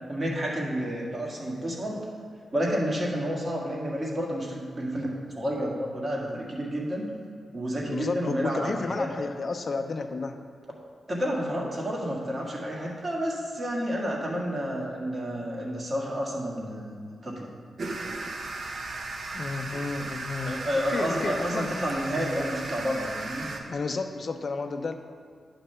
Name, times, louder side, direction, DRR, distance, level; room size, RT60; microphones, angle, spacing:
voice 1, 0.1-2.0 2.5-5.1 5.3-7.1 7.5-9.1 11.1-17.5 20.4-23.4, equal, 35° right, -3 dB, 1.7 m, -30 dB
voice 2, 7.9-10.4 19.3-20.6 20.9-21.8 23.7-25.0, left 4 dB, 50° left, 5 dB, 0.6 m, -32 dB
sound 1, 17.8-23.6, right 2 dB, 65° right, 0.9 m, -36 dB
9.4 x 3.3 x 6.7 m, 2.2 s
cardioid pair, 80°, 0 cm